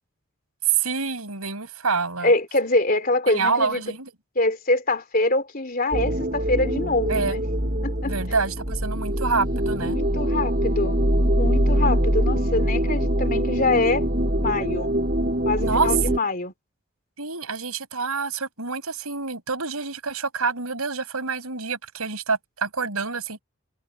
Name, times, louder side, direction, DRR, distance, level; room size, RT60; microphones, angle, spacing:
voice 1, 0.7-2.3 3.3-4.1 7.1-7.4 8.0-10.0 15.6-15.9 17.2-23.4, right 4 dB, 90° right, 5.8 m, -27 dB
voice 2, 2.2-3.8 4.3-7.4 7.8-8.1 9.6-14.1 14.4-14.9 15.5-16.5, left 2 dB, 40° left, 3.4 m, -24 dB
sound 1, 5.9-16.2, equal, 40° right, 5.9 m, -23 dB
head